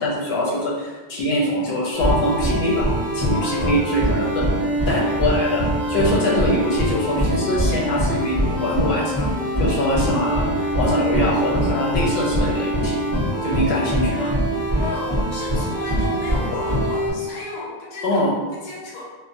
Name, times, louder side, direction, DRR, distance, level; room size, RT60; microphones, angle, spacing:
voice 1, 0.0-2.9 3.1-4.4 4.9-9.3 9.6-13.1 13.4-14.3 18.0-18.3, left 1 dB, 85° left, -4 dB, 0.9 m, -23 dB
sound 1, 1.9-17.1, equal, 15° left, 1.0 m, -23 dB
voice 2, 3.3-3.8 6.0-6.4 14.8-18.2 18.5-19.1, left 3 dB, 50° left, -4 dB, 0.6 m, -34 dB
2.5 x 2.0 x 2.5 m, 1.2 s
omnidirectional pair, 1.0 m